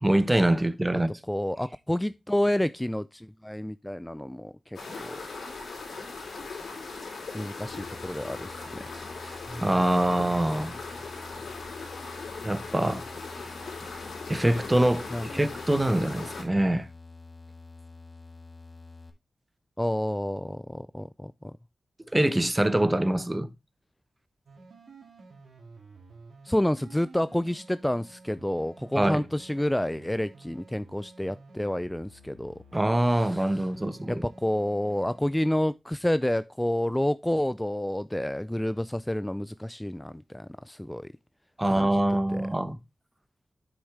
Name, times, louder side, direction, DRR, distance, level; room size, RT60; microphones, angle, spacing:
voice 1, 0.0-1.1 9.2-10.7 12.4-13.0 14.3-16.9 22.1-23.5 28.9-29.2 32.7-34.2 41.6-42.8, right 1 dB, 20° right, 0.9 m, -24 dB
voice 2, 1.3-5.2 7.3-8.8 15.1-15.3 16.0-16.1 19.8-21.5 26.4-32.6 33.2-33.4 34.1-41.1 41.7-42.0 42.3-42.5, left 1 dB, 10° left, 0.3 m, -29 dB
sound 1, 4.7-16.4, left 3 dB, 80° left, 3.7 m, -39 dB
sound 2, 7.7-19.1, left 3 dB, 40° left, 1.6 m, -48 dB
sound 3, 24.5-35.4, right 3 dB, 85° right, 2.4 m, -52 dB
8.1 x 6.2 x 3.3 m
cardioid pair, 50°, 0 cm